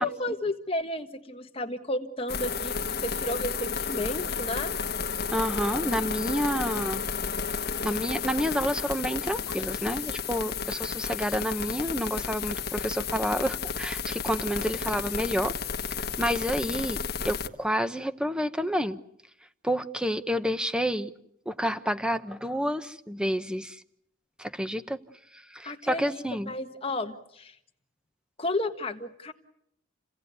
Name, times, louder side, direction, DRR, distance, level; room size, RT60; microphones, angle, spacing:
voice 1, 0.0-4.7 25.6-27.6 28.4-29.3, left 1 dB, 25° left, 6 dB, 1.5 m, -32 dB
sound 1, 2.3-17.5, left 6 dB, 50° left, 1.4 m, -32 dB
voice 2, 5.3-7.0 7.8-15.5 16.2-19.0 19.6-21.1 21.5-23.8 24.4-25.0 25.5-26.5, equal, 5° right, 11 dB, 1.0 m, -29 dB
29.5 x 17.0 x 9.5 m, 0.75 s
head